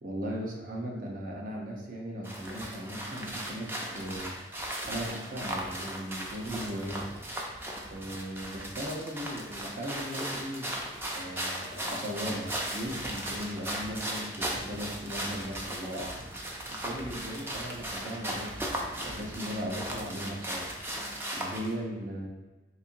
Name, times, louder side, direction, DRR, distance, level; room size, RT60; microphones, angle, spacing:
voice 1, 0.0-4.4 4.8-7.1 7.9-10.7 11.1-16.2 16.7-20.7 21.3-22.3, equal, 50° right, -1 dB, 0.6 m, -37 dB
sound 1, 2.2-21.7, right 1 dB, 15° right, 0.4 m, -37 dB
4.1 x 2.8 x 2.6 m, 1.1 s
head